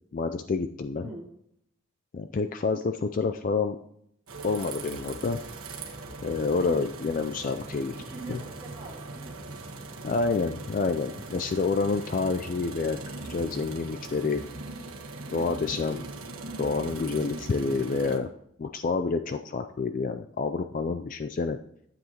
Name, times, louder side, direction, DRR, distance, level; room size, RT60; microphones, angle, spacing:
voice 1, 0.1-1.1 2.1-3.8 4.4-5.4 6.2-7.9 8.3-8.4 10.0-13.0 13.3-14.4 15.3-16.0 16.6-18.3 18.6-21.6, left 4 dB, 40° left, 8 dB, 0.3 m, -28 dB
sound 1, 4.3-18.2, right 3 dB, 85° right, 1.4 m, -40 dB
voice 2, 7.9-9.4 15.8-16.1, right 2 dB, 10° right, -7 dB, 3.2 m, -43 dB
12.5 x 7.8 x 2.9 m, 0.74 s
head